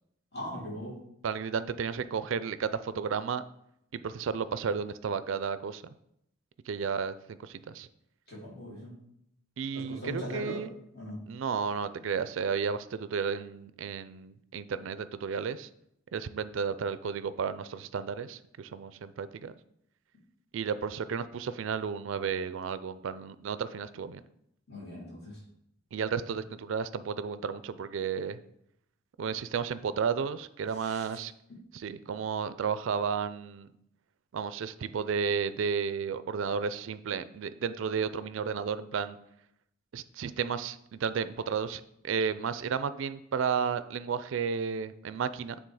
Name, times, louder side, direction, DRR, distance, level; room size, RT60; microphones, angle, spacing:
voice 1, 0.3-0.9 8.3-8.9 9.7-10.7 10.9-11.2 24.7-25.4 30.8-31.1, left 1 dB, 50° left, -4 dB, 2.8 m, -39 dB
voice 2, 1.2-3.4 3.9-5.8 6.7-7.9 9.6-10.7 11.3-15.7 16.1-19.5 20.5-24.2 25.9-28.4 29.2-31.3 31.7-33.7 34.3-39.2 39.9-45.6, right 6 dB, 70° right, 14 dB, 0.4 m, -33 dB
9.1 x 3.5 x 4.8 m, 0.76 s
head